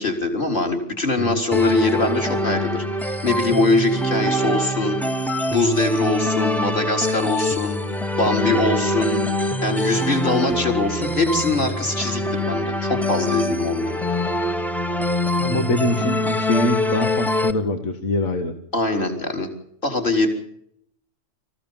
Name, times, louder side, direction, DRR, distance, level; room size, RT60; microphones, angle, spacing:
voice 1, 0.0-5.0 5.5-7.8 8.2-14.0 18.7-19.5 19.8-20.3, left 2 dB, 40° left, 3 dB, 4.2 m, -22 dB
sound 1, 1.5-17.5, left 1 dB, ahead, 1.1 m, -24 dB
voice 2, 15.4-18.5, left 1 dB, 80° left, 6 dB, 2.2 m, -24 dB
26.0 x 16.0 x 7.2 m, 0.71 s
omnidirectional pair, 1.4 m